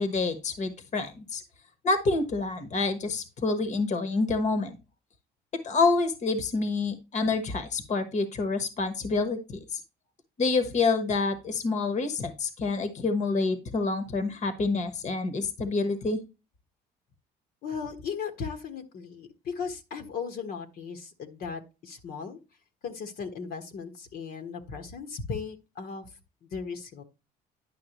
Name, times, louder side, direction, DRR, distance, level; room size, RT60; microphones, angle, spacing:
voice 1, 0.0-1.4 1.8-4.8 5.6-9.8 10.4-16.2, left 3 dB, 45° left, 9 dB, 1.3 m, -27 dB
voice 2, 17.6-22.4 22.8-26.1 26.4-27.0, left 5 dB, 65° left, 5 dB, 1.4 m, -37 dB
10.5 x 5.9 x 3.0 m, 0.27 s
cardioid pair, 110°, 17 cm